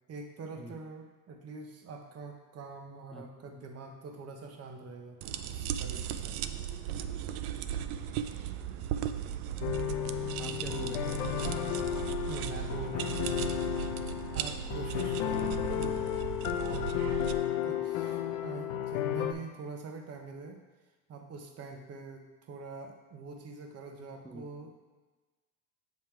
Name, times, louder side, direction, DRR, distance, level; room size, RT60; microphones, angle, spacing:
voice 1, 0.1-5.2 5.4-6.4 12.3-13.8 14.3-16.1 16.5-16.9 17.6-20.6 21.1-24.8, right 4 dB, 35° right, 4 dB, 0.9 m, -44 dB
sound 1, 5.2-17.3, right 9 dB, 75° right, 0.5 m, -36 dB
sound 2, 9.6-19.3, left 11 dB, 70° left, 0.7 m, -33 dB
voice 2, 9.9-11.4 15.6-15.8 17.7-17.8 24.2-24.6, right 1 dB, ahead, 2 dB, 0.5 m, -46 dB
7.5 x 3.2 x 4.5 m, 1.3 s
supercardioid pair, 100°, 44 cm